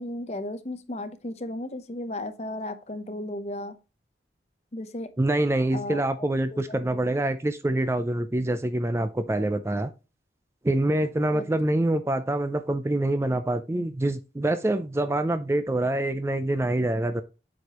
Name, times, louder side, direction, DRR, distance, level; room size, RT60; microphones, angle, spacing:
voice 1, 0.0-3.8 4.7-5.1 5.7-6.2 6.5-7.0 11.3-11.4, left 1 dB, 35° left, 0.8 m, -35 dB
voice 2, 5.2-9.9 10.6-17.2, right 1 dB, 15° right, 0.4 m, -25 dB
8.1 x 4.8 x 2.9 m
head